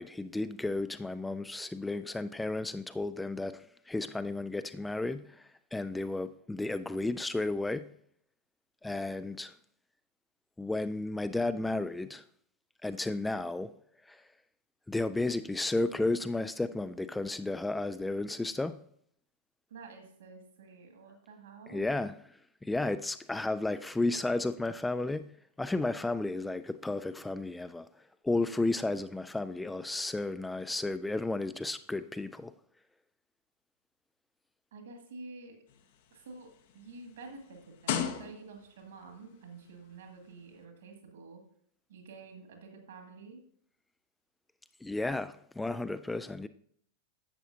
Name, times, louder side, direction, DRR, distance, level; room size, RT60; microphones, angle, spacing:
voice 1, 0.0-7.9 8.8-9.5 10.6-12.2 12.8-13.7 14.1-14.2 14.9-18.8 21.7-22.1 22.6-25.3 25.6-27.9 28.2-32.5 44.8-46.5, left 2 dB, 5° left, 0.3 m, -33 dB
voice 2, 19.7-21.8 34.7-35.6 36.1-41.4 41.9-43.4, right 3 dB, 60° right, 2.1 m, -49 dB
sound 1, 35.7-38.8 39.7-39.8, left 8 dB, 55° left, 0.9 m, -37 dB
11.0 x 8.1 x 2.7 m
figure-of-eight pair, 90°, 0 cm